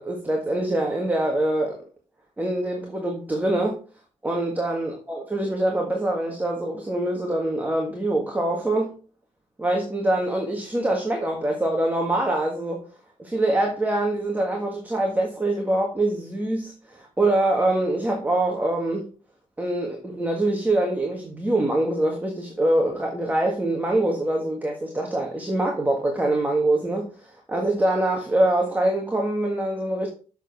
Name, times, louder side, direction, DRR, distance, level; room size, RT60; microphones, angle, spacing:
voice 1, 0.0-1.8 2.4-3.8 4.2-8.9 9.6-12.8 13.2-19.1 19.6-30.1, right 1 dB, 10° right, 1.6 m, -24 dB
7.3 x 6.6 x 5.3 m
wide cardioid pair, 135°, 13 cm